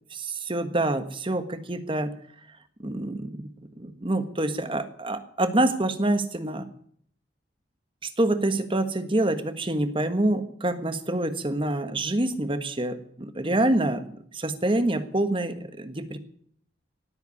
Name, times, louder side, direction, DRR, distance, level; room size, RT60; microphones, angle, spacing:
voice 1, 0.1-2.1 2.8-3.5 3.8-6.6 8.2-14.0 14.3-16.2, right 1 dB, 30° right, 10 dB, 1.5 m, -26 dB
18.0 x 8.3 x 9.7 m, 0.64 s
head